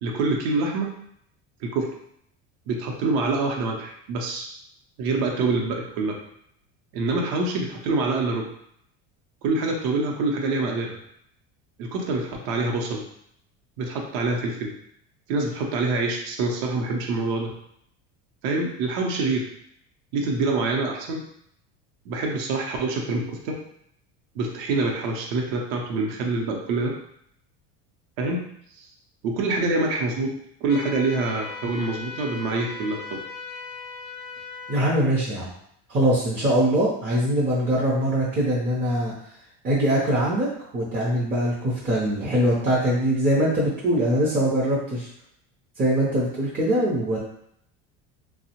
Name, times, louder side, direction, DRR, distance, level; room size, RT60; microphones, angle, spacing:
voice 1, 0.0-0.9 1.6-1.9 2.7-4.5 5.0-6.2 6.9-8.4 9.4-11.0 11.8-13.0 13.8-14.7 15.3-17.5 18.4-19.4 20.1-21.2 22.1-23.5 24.4-26.9 28.2-28.4 28.7-28.9 29.2-30.3 30.6-33.2, right 3 dB, 65° right, 1 dB, 0.6 m, -25 dB
sound 1, 30.7-34.9, left 4 dB, 65° left, 0.5 m, -38 dB
voice 2, 34.7-35.5 35.9-39.1 39.6-40.5 40.7-45.1 45.8-47.2, right 1 dB, 25° right, -6 dB, 0.5 m, -22 dB
2.7 x 2.0 x 2.8 m, 0.71 s
cardioid pair, 140°, 38 cm